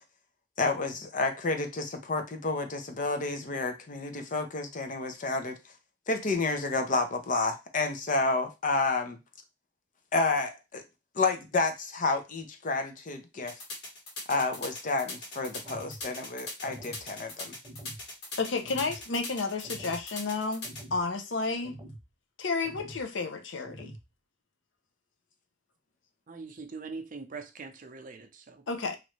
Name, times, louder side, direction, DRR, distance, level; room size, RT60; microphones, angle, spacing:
voice 1, 0.6-5.6 6.1-9.2 10.1-10.8 11.2-13.5 14.3-17.6, left 3 dB, 45° left, 0.6 m, -30 dB
sound 1, 13.5-20.8, left 2 dB, 65° left, 1.3 m, -40 dB
sound 2, 15.6-16.1 16.6-17.0 17.6-18.0 18.6-19.0 19.6-20.0 20.6-21.0 21.6-22.1 22.6-23.0 23.6-24.0, right 1 dB, 20° right, 0.9 m, -46 dB
voice 2, 18.4-20.6 20.9-21.8 22.4-23.9 28.7-29.0, left 4 dB, 85° left, 0.6 m, -31 dB
voice 3, 26.3-28.6, right 4 dB, 45° right, 0.6 m, -42 dB
3.2 x 2.6 x 3.0 m
head